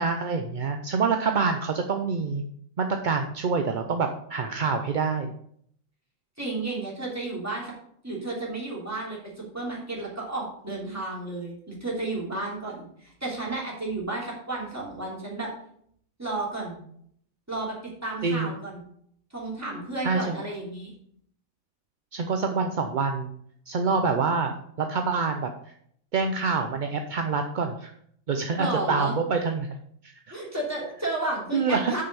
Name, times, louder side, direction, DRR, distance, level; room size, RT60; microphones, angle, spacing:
voice 1, 0.0-2.4 2.8-5.3 18.2-18.5 20.0-20.4 22.1-23.3 23.7-25.5 26.1-27.9 28.3-29.8 30.3-30.4 31.5-32.0, right 4 dB, 50° right, 5 dB, 0.6 m, -26 dB
voice 2, 6.4-7.7 8.0-15.5 16.2-16.8 17.5-17.8 18.0-18.8 19.3-20.9 28.6-29.1 30.3-32.0, right 2 dB, 10° right, -5 dB, 3.0 m, -32 dB
6.7 x 5.7 x 6.8 m, 0.67 s
omnidirectional pair, 1.4 m